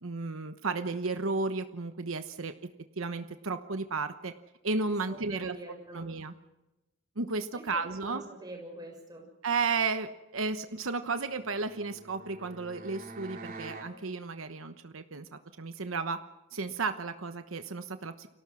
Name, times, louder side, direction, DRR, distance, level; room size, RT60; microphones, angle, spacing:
voice 1, 0.0-2.5 3.0-4.3 4.6-5.6 5.9-6.3 7.2-8.2 9.4-15.3 15.6-16.2 16.5-18.3, right 4 dB, 70° right, 9 dB, 1.1 m, -33 dB
voice 2, 5.1-6.1 7.5-9.3, right 1 dB, 20° right, 1 dB, 6.9 m, -45 dB
sound 1, 11.3-13.9, right 2 dB, 40° right, 3.6 m, -46 dB
30.0 x 23.5 x 6.3 m, 0.99 s
head